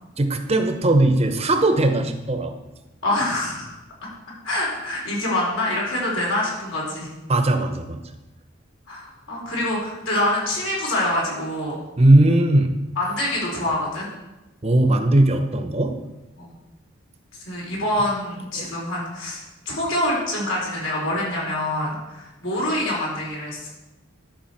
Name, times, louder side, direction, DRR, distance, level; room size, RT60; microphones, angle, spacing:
voice 1, 0.2-2.5 7.3-8.0 12.0-12.7 14.6-15.9 18.6-18.7, right 1 dB, 30° right, 7 dB, 0.8 m, -18 dB
voice 2, 3.0-3.8 4.4-7.1 8.9-11.8 13.0-14.1 16.4-16.5 17.4-23.7, left 1 dB, 80° left, -4 dB, 4.5 m, -25 dB
11.5 x 5.0 x 7.2 m, 1.0 s
head